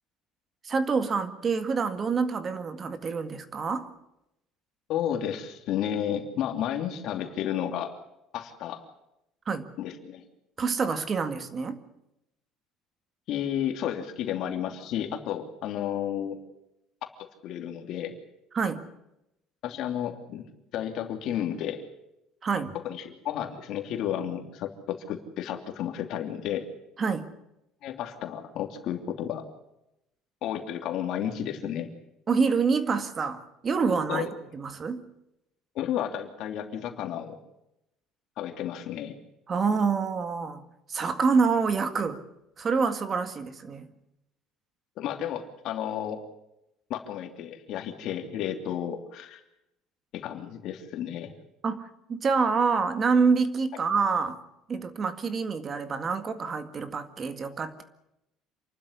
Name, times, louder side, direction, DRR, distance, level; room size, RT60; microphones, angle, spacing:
voice 1, 0.6-3.9 9.5-9.7 10.6-11.8 18.5-18.8 22.4-22.7 27.0-27.3 32.3-34.3 34.5-35.0 39.5-42.2 42.6-43.9 51.6-54.4 54.7-57.8, right 5 dB, 30° right, 10 dB, 1.9 m, -27 dB
voice 2, 4.9-7.9 8.3-8.8 9.8-10.2 13.3-16.4 17.4-18.1 19.6-20.4 20.7-21.8 22.8-26.7 27.8-29.4 30.4-31.9 34.1-34.3 35.7-37.3 38.4-39.2 45.0-46.2 46.9-49.4 50.1-51.3, left 10 dB, 55° left, 5 dB, 2.8 m, -32 dB
27.5 x 12.5 x 9.9 m, 0.87 s
cardioid pair, 150°, 0 cm